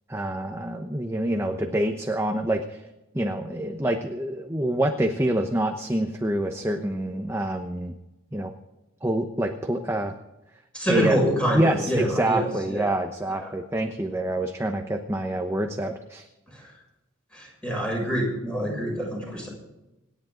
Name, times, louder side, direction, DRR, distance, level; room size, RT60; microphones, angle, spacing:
voice 1, 0.1-2.8 3.1-7.9 8.3-8.5 9.0-10.1 10.9-11.2 11.5-16.3, right 1 dB, 15° right, 4 dB, 0.9 m, -26 dB
voice 2, 10.7-12.9 13.4-13.5 16.6-16.7 17.3-19.5, equal, 5° left, -1 dB, 6.6 m, -26 dB
27.0 x 10.5 x 3.9 m, 0.97 s
head